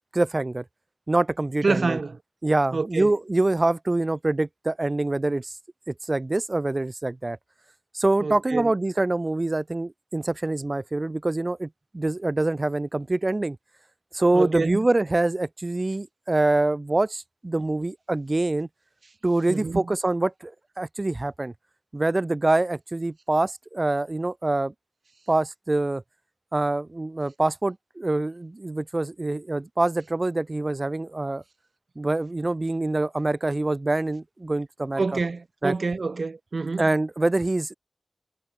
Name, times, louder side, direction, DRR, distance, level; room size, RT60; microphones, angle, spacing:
voice 1, 0.1-0.6 1.1-2.0 2.4-5.5 5.9-7.4 7.9-13.6 14.1-18.7 19.2-20.5 20.8-21.5 21.9-24.7 25.3-26.0 26.5-31.4 32.0-35.0 35.6-35.7 36.8-37.7, right 2 dB, 40° right, 1.5 m, -25 dB
voice 2, 1.6-2.2 2.7-3.1 8.2-8.7 14.3-14.9 19.5-19.9 35.0-36.8, right 3 dB, 65° right, 1.0 m, -27 dB
cardioid pair, 40°, 0 cm